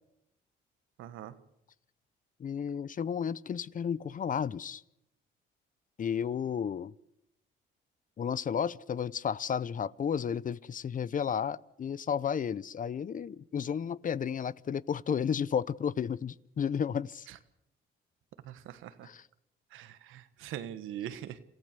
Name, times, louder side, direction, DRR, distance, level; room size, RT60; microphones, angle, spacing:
voice 1, 1.0-1.3 17.3-17.4 18.4-19.1 19.7-21.4, right 11 dB, 90° right, 12 dB, 1.4 m, -42 dB
voice 2, 2.4-4.8 6.0-6.9 8.2-17.3 19.0-19.2, left 7 dB, 40° left, 20 dB, 0.7 m, -32 dB
27.5 x 15.0 x 6.9 m, 0.81 s
cardioid pair, 90°, 20 cm